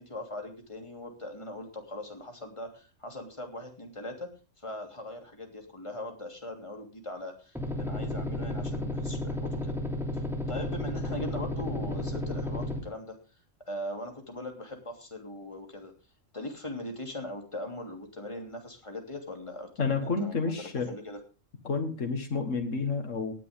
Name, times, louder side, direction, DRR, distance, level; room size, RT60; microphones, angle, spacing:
voice 1, 0.0-4.3 4.6-9.8 10.5-13.1 13.7-15.9 16.3-21.2, left 1 dB, 25° left, 3 dB, 3.1 m, -40 dB
sound 1, 7.5-12.8, left 1 dB, ahead, 2.9 m, -33 dB
voice 2, 19.8-20.9 21.6-23.3, left 4 dB, 75° left, 5 dB, 2.1 m, -30 dB
18.0 x 10.0 x 3.6 m, 0.34 s
omnidirectional pair, 1.3 m